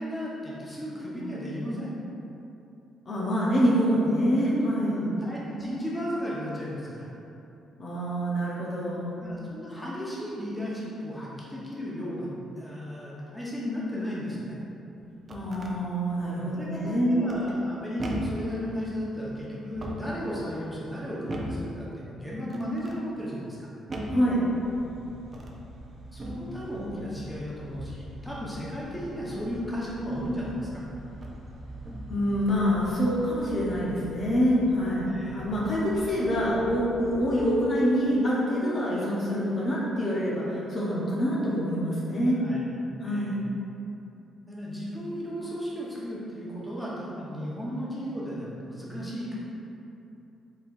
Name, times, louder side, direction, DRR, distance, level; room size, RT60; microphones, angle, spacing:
voice 1, 0.0-1.9 4.9-7.1 9.2-14.6 16.5-23.7 26.1-30.8 35.1-35.4 42.4-42.7 43.0-43.4 44.5-49.4, equal, 5° left, -7 dB, 1.0 m, -35 dB
voice 2, 3.1-5.0 7.8-9.2 15.3-17.2 24.1-24.4 32.1-42.4 43.0-43.4, equal, 45° left, -6 dB, 0.8 m, -26 dB
sound 1, 15.0-15.8 17.3-17.7 18.0-18.5 19.6-20.2 21.3-21.7 22.5-23.0 23.9-24.3 25.2-25.6 26.2-26.5 27.7-28.0 30.2-30.3 31.1-31.5 31.8-32.2, right 1 dB, 35° right, 0.5 m, -37 dB
sound 2, 24.5-37.5, equal, 60° right, 0.8 m, -44 dB
4.3 x 3.6 x 2.5 m, 2.9 s
cardioid pair, 90°, 0 cm